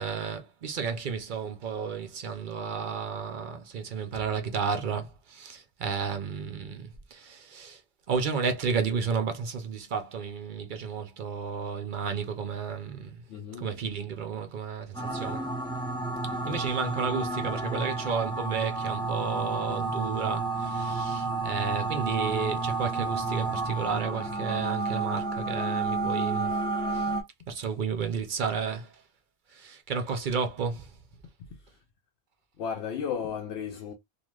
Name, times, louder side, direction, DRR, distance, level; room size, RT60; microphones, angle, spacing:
voice 1, 0.0-7.8 8.1-13.2 13.6-15.5 16.2-26.6 26.9-27.1 27.5-28.9 29.5-30.9, right 6 dB, 55° right, 0.6 m, -32 dB
voice 2, 13.3-13.8 16.4-16.6 27.1-27.2 31.4-31.8 32.6-33.9, left 7 dB, 70° left, 0.8 m, -35 dB
sound 1, 14.9-27.2, right 3 dB, 5° left, 0.6 m, -31 dB
3.2 x 2.3 x 2.3 m
omnidirectional pair, 1.1 m